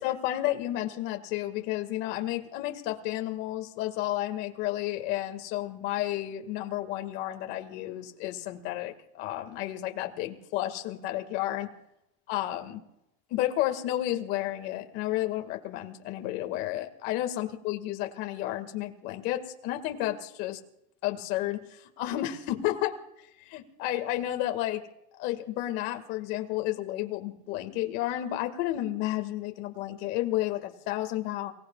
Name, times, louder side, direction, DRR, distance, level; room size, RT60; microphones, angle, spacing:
voice 1, 0.0-11.7 12.3-12.8 13.3-20.6 21.0-23.0 23.5-24.8 25.2-31.5, left 14 dB, 60° left, 6 dB, 1.9 m, -31 dB
30.0 x 18.5 x 2.4 m, 0.84 s
supercardioid pair, 135°, 19 cm